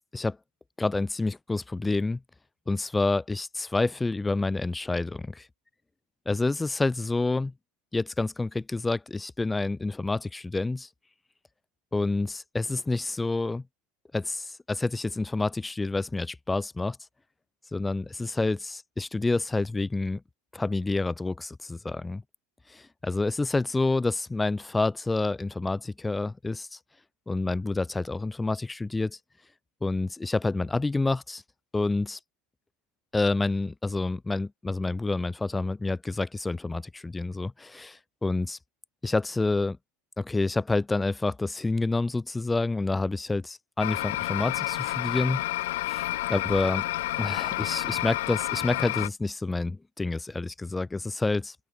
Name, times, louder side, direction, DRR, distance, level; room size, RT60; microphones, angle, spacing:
voice 1, 0.8-2.2 2.7-5.5 6.2-7.5 7.9-10.9 11.9-13.6 14.1-17.0 17.7-20.2 20.5-22.2 22.7-26.8 27.3-29.2 29.8-31.4 31.7-32.2 33.1-38.6 39.0-39.8 40.2-45.4 45.9-46.9 47.2-51.5, left 3 dB, 5° left, 1.6 m, -28 dB
sound 1, 43.8-49.1, left 17 dB, 80° left, 2.0 m, -30 dB
open air
supercardioid pair, 175°, 0 cm